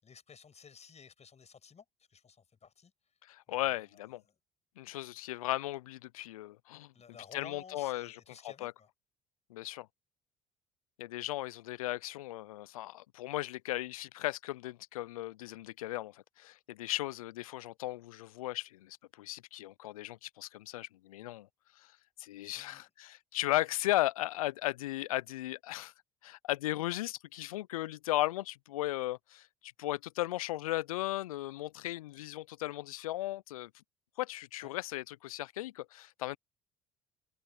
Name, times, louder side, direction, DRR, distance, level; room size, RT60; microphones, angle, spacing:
voice 1, 0.0-1.8 2.1-2.9 3.5-4.0 4.3-4.4 6.9-8.9 22.5-22.8 34.6-34.7, left 6 dB, 40° left, 7.5 m, -54 dB
voice 2, 3.2-4.2 4.8-6.9 7.3-8.7 9.5-9.9 11.0-21.5 21.8-21.9 22.2-25.9 26.2-33.7 34.2-36.4, left 16 dB, 80° left, 0.5 m, -36 dB
hypercardioid pair, 55°, 18 cm